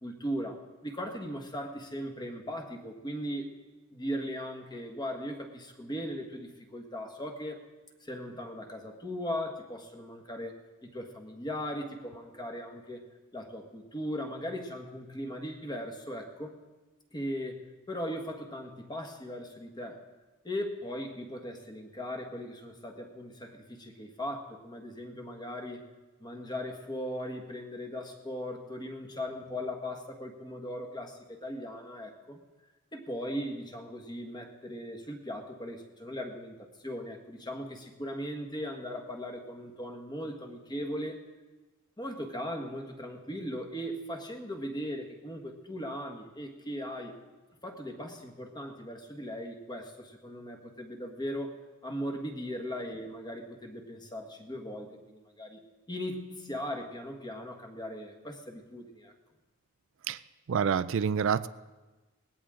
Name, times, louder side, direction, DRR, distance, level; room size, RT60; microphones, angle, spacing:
voice 1, 0.0-3.5 3.9-7.6 8.0-10.6 10.8-13.0 13.3-16.5 17.1-20.0 20.4-25.8 26.2-32.4 32.9-41.2 42.0-47.1 47.6-51.5 51.8-55.6 55.9-59.1, equal, 20° left, 3 dB, 1.6 m, -38 dB
voice 2, 60.5-61.5, right 7 dB, 65° right, 13 dB, 0.4 m, -27 dB
19.5 x 16.5 x 3.8 m, 1.2 s
head